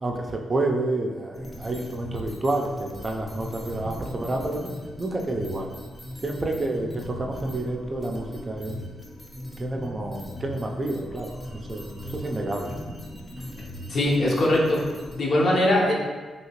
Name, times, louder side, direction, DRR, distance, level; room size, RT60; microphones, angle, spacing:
voice 1, 0.0-4.7 5.0-5.7 6.2-8.8 9.6-12.8, right 2 dB, 35° right, 1 dB, 0.4 m, -29 dB
sound 1, 1.3-15.2, left 1 dB, 25° left, 0.5 m, -39 dB
voice 2, 13.9-14.8 15.1-15.9, left 1 dB, 55° left, -3 dB, 0.7 m, -21 dB
2.8 x 2.7 x 2.9 m, 1.4 s
cardioid pair, 60°, 0 cm